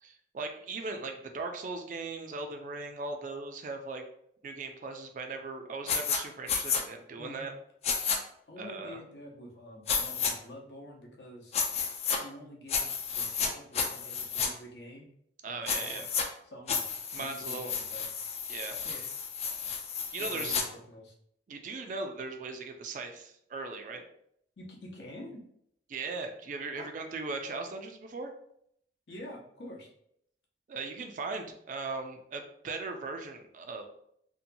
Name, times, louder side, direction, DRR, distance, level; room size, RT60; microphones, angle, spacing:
voice 1, 0.0-4.0 4.4-7.5 8.6-9.0 15.4-16.1 17.1-17.7 18.5-19.1 20.1-20.6 21.5-24.0 25.9-28.3 30.7-33.9, right 3 dB, 45° right, 5 dB, 0.3 m, -38 dB
sound 1, 5.9-6.2 6.5-6.8 7.8-8.2 9.9-10.3 11.5-12.2 12.7-13.5 13.7-14.5 15.7-16.2 16.7-20.6, left 6 dB, 35° left, 0.3 m, -31 dB
voice 2, 7.1-7.5 8.5-11.6 12.2-15.1 15.5-16.0 16.4-16.8 17.2-18.1 18.8-19.0 20.2-21.1 24.6-25.4 26.7-26.9 29.1-29.9, left 1 dB, 75° left, -1 dB, 0.7 m, -47 dB
2.7 x 2.2 x 2.6 m, 0.71 s
head